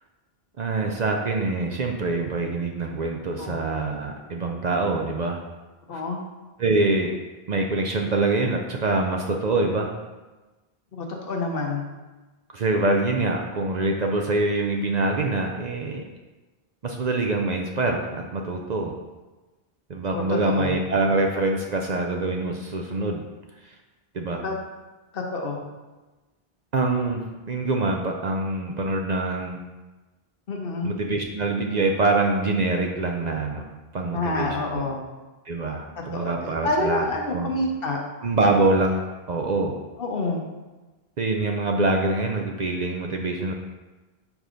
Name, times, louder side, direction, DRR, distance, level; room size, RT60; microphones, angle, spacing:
voice 1, 0.6-5.4 5.9-6.0 6.6-7.1 7.5-9.9 12.5-16.0 16.8-18.9 19.9-23.2 23.6-23.7 24.1-24.4 26.7-27.2 27.5-29.6 30.8-33.7 33.9-34.8 35.5-37.0 37.3-37.5 38.2-39.8 41.2-43.5, right 2 dB, 50° right, 2 dB, 0.6 m, -25 dB
voice 2, 5.9-6.2 10.9-11.8 20.1-20.8 24.4-24.5 25.1-25.6 30.5-30.9 34.1-35.0 36.1-38.0 40.0-40.5, left 2 dB, 65° left, 1 dB, 1.0 m, -28 dB
4.9 x 3.9 x 5.0 m, 1.2 s
omnidirectional pair, 1.0 m